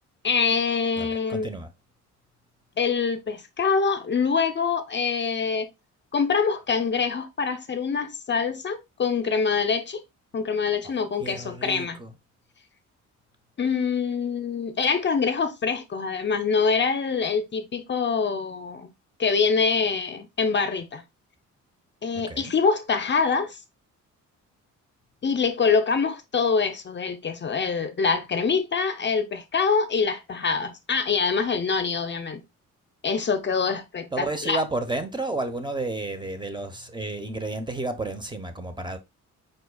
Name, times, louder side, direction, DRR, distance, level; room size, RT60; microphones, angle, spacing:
voice 1, 0.2-1.5 2.8-5.7 6.1-10.0 10.3-12.0 13.6-18.9 19.2-21.0 22.0-23.6 25.2-32.4 33.0-34.6, left 5 dB, 35° left, 0.7 m, -25 dB
voice 2, 1.0-1.7 11.2-12.1 22.1-22.5 34.1-39.0, right 2 dB, 15° right, 0.9 m, -31 dB
5.0 x 4.4 x 2.2 m
cardioid pair, 90°, 30 cm